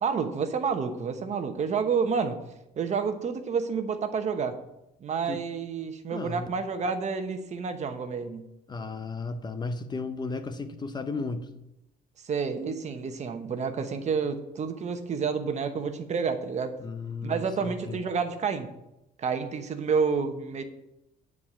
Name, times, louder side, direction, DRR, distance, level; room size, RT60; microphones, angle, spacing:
voice 1, 0.0-2.4 2.8-4.6 5.0-8.5 12.2-16.8 17.2-18.7 19.2-20.6, right 5 dB, 45° right, 8 dB, 1.1 m, -29 dB
voice 2, 6.1-6.6 8.7-11.5 16.8-18.0, left 3 dB, 25° left, 9 dB, 0.7 m, -34 dB
9.7 x 4.8 x 7.3 m, 0.88 s
cardioid pair, 110°, 17 cm